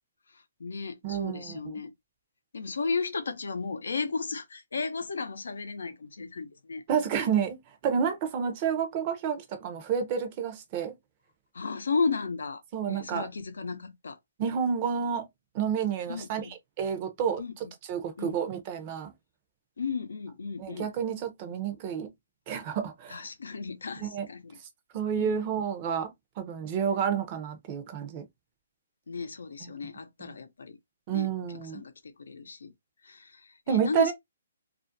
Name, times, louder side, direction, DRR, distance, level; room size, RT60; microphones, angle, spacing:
voice 1, 0.3-1.9 2.5-6.8 11.5-14.2 16.1-16.5 17.4-17.7 18.2-18.4 19.8-20.9 23.1-24.6 25.1-25.4 29.1-30.8 31.1-32.7 33.0-34.1, left 4 dB, 80° left, 0.5 m, -34 dB
voice 2, 1.0-1.6 6.9-7.6 7.8-10.9 12.7-13.3 14.4-15.3 15.5-16.4 16.8-17.4 17.9-19.1 20.6-22.1 22.5-23.2 24.0-24.3 24.9-26.1 26.4-28.2 29.6-29.7 30.2-30.4 31.1-31.8 33.7-34.1, right 7 dB, 30° right, 0.6 m, -29 dB
2.4 x 2.1 x 2.5 m
hypercardioid pair, 155°, 0 cm